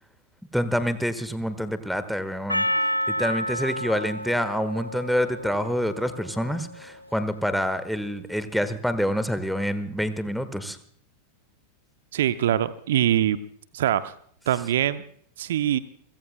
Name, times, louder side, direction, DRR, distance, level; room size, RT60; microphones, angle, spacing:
voice 1, 0.5-2.6 3.1-10.8, equal, ahead, 11 dB, 1.5 m, -27 dB
Percussion, 2.5-7.0, equal, 90° left, 0.8 m, -30 dB
voice 2, 12.1-13.4 13.7-14.1 14.5-15.0 15.4-15.8, right 11 dB, 60° right, 14 dB, 0.6 m, -23 dB
29.5 x 16.5 x 2.2 m, 0.63 s
figure-of-eight pair, 90°, 0 cm